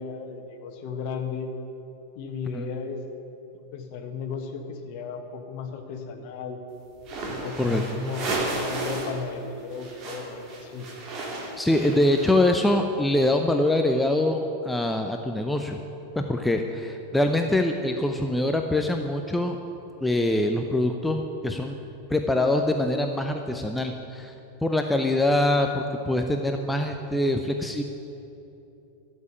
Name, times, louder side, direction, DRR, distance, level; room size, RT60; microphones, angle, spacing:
voice 1, 0.0-1.5 2.1-3.0 3.5-6.6 7.3-10.9, left 5 dB, 45° left, 6 dB, 1.3 m, -35 dB
sound 1, 7.0-9.2 9.5-12.6, right 2 dB, 35° right, 2.6 m, -33 dB
voice 2, 11.6-15.8 16.2-19.6 20.0-21.8 22.1-24.3 24.6-27.8, left 1 dB, 5° left, 4 dB, 0.7 m, -24 dB
12.0 x 7.3 x 9.7 m, 2.9 s
figure-of-eight pair, 90°, 0 cm